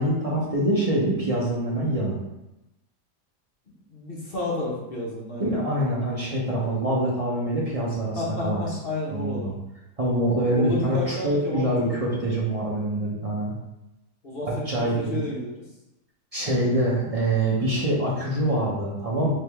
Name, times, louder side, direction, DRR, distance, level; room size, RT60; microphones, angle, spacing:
voice 1, 0.0-2.2 5.4-8.6 9.1-9.5 10.0-13.5 14.4-15.2 16.3-19.3, right 1 dB, 50° right, -5 dB, 0.4 m, -25 dB
voice 2, 3.7-5.5 8.2-9.5 10.5-12.1 14.2-15.6, left 2 dB, 40° left, -5 dB, 1.0 m, -31 dB
3.5 x 3.4 x 3.4 m, 0.94 s
omnidirectional pair, 1.8 m